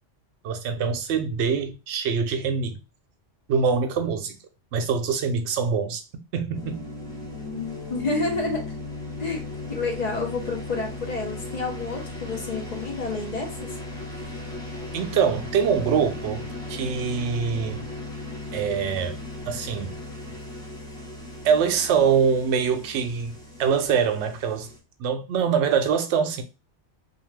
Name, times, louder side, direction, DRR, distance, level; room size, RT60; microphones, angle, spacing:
voice 1, 0.4-2.8 3.5-4.4 4.7-6.0 6.3-6.8 14.9-17.8 18.5-19.2 19.5-19.9 21.4-23.3 23.6-24.7 25.0-26.4, right 6 dB, 70° right, 0.8 m, -24 dB
sound 1, 6.5-24.8, left 2 dB, 5° left, 0.5 m, -37 dB
voice 2, 7.5-8.6 9.2-9.4 9.7-13.7, left 3 dB, 40° left, 0.8 m, -29 dB
2.6 x 2.3 x 3.2 m
omnidirectional pair, 1.2 m